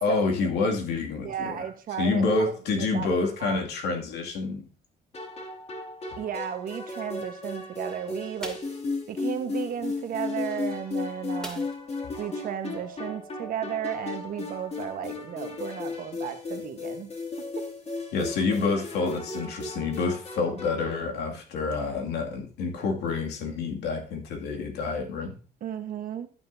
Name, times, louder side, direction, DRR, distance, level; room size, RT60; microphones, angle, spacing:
voice 1, 0.0-1.5 2.0-4.6 18.1-25.3, left 4 dB, 85° left, 2.4 m, -28 dB
voice 2, 1.2-3.6 6.2-8.6 9.1-11.7 12.2-17.1 25.6-26.3, right 9 dB, 55° right, 1.3 m, -34 dB
sound 1, 5.1-21.1, left 3 dB, 40° left, 2.6 m, -35 dB
sound 2, 8.4-8.8 11.4-12.0 12.4-12.5 12.9-13.0, equal, 5° left, 2.5 m, -41 dB
11.5 x 9.1 x 2.7 m
cardioid pair, 110°, 17 cm